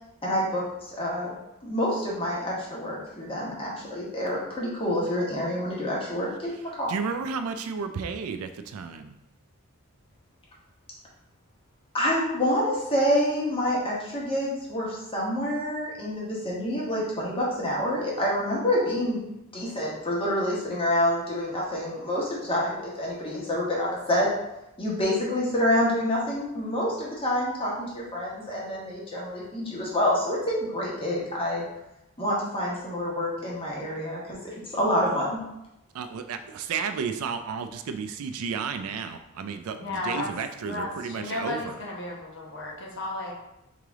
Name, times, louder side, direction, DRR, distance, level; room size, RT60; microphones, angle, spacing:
voice 1, 0.2-1.4 1.6-6.9 11.9-19.2 19.5-24.3 24.8-31.6 32.2-35.4, left 1 dB, 25° left, -5 dB, 1.2 m, -27 dB
voice 2, 6.9-9.1 35.9-41.8, right 5 dB, 75° right, 9 dB, 0.4 m, -32 dB
voice 3, 39.7-40.3 40.6-43.3, left 2 dB, 60° left, -2 dB, 1.0 m, -34 dB
3.8 x 3.3 x 3.5 m, 0.90 s
head